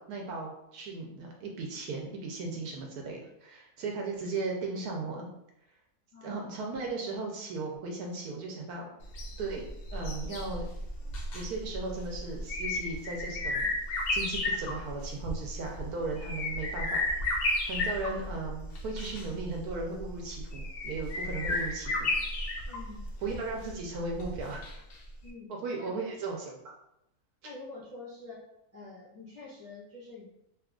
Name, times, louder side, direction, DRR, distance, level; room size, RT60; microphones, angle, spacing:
voice 1, 0.0-5.3 6.2-8.9 9.4-9.6 9.9-10.7 11.3-13.7 14.1-17.1 17.7-22.1 22.6-22.7 23.2-24.6 25.6-26.6 27.4-27.5, right 3 dB, 75° right, 0 dB, 1.1 m, -36 dB
voice 2, 6.1-6.6 22.6-23.1 25.2-25.9 27.4-28.4 28.7-30.3, left 3 dB, 10° right, -6 dB, 0.9 m, -47 dB
sound 1, 9.0-25.0 25.3-25.4, left 2 dB, 75° left, 0.5 m, -34 dB
2.9 x 2.3 x 3.5 m, 0.82 s
omnidirectional pair, 1.7 m